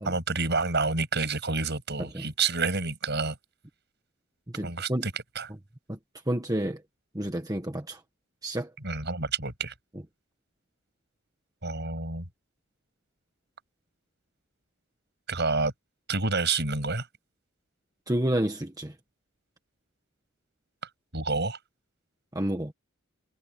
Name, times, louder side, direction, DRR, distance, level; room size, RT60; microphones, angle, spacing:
voice 1, 0.0-3.4 4.6-5.5 8.8-9.7 11.6-12.3 15.3-15.7 16.1-17.1 21.1-21.6, right 4 dB, 50° right, 6.9 m, -28 dB
voice 2, 4.5-5.1 5.9-6.0 6.3-6.8 7.1-8.0 8.4-8.7 18.1-18.9 22.3-22.7, right 1 dB, 15° right, 1.4 m, -30 dB
head